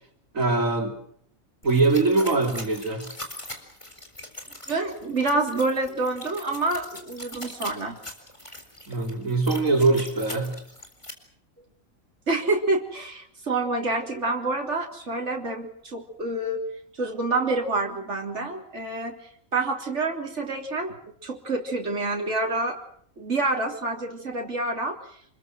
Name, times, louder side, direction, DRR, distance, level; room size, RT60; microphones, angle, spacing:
voice 1, 0.3-1.0 1.6-3.1 8.9-10.6, right 3 dB, 75° right, 3 dB, 4.0 m, -22 dB
sound 1, 1.6-11.1, left 1 dB, 20° left, 4.3 m, -41 dB
voice 2, 4.7-8.0 12.3-16.6 16.9-19.2 19.5-20.9 21.2-22.8 23.2-25.0, right 2 dB, 60° right, 1 dB, 3.9 m, -27 dB
28.0 x 22.0 x 6.3 m, 0.65 s
omnidirectional pair, 1.4 m